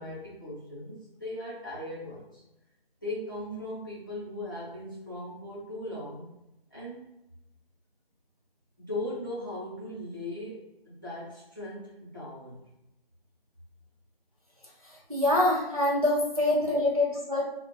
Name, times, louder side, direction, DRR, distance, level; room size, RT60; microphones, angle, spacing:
voice 1, 0.0-2.4 3.0-6.3 6.7-7.1 8.8-12.6 16.7-16.8, left 1 dB, 20° left, -9 dB, 0.6 m, -38 dB
voice 2, 14.8-17.4, left 1 dB, 40° right, -4 dB, 0.4 m, -25 dB
3.0 x 2.1 x 2.6 m, 0.88 s
figure-of-eight pair, 170°, 30 cm